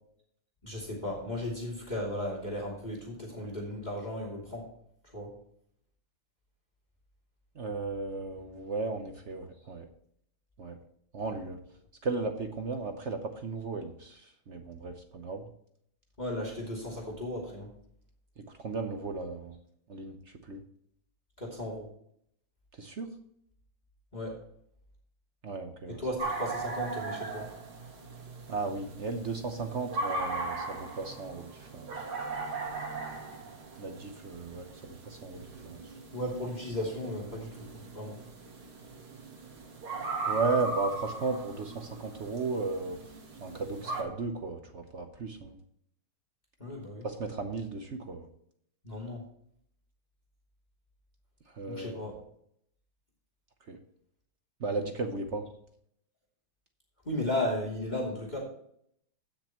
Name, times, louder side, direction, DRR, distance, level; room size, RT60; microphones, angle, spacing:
voice 1, 0.6-4.7 5.1-5.3 16.2-17.7 21.4-21.9 24.1-24.4 25.9-27.5 36.1-38.2 46.6-47.1 48.8-49.2 51.7-52.2 57.0-58.4, left 1 dB, 20° left, -3 dB, 2.9 m, -35 dB
voice 2, 7.6-9.9 10.6-10.8 11.1-11.6 12.0-15.5 18.4-19.5 19.9-20.2 20.5-20.6 22.8-23.1 25.4-26.0 28.5-31.9 33.8-35.8 40.3-43.0 43.4-45.5 47.0-48.3 51.6-52.0 53.7-53.8 54.6-55.5, right 3 dB, 55° right, 6 dB, 0.8 m, -35 dB
sound 1, 26.2-44.0, right 3 dB, 85° right, 2.8 m, -39 dB
16.0 x 6.6 x 3.0 m, 0.68 s
omnidirectional pair, 2.3 m